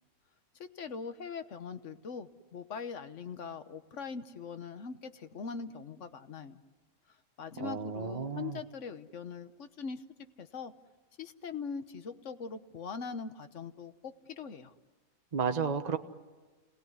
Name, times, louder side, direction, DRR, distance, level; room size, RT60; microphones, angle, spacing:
voice 1, 0.6-6.6 7.4-10.0 10.4-10.7 11.2-14.7, left 5 dB, 60° left, 10 dB, 1.4 m, -41 dB
voice 2, 7.6-8.6 15.3-16.0, right 6 dB, 30° right, 6 dB, 1.2 m, -32 dB
29.0 x 19.0 x 9.5 m, 1.3 s
omnidirectional pair, 1.5 m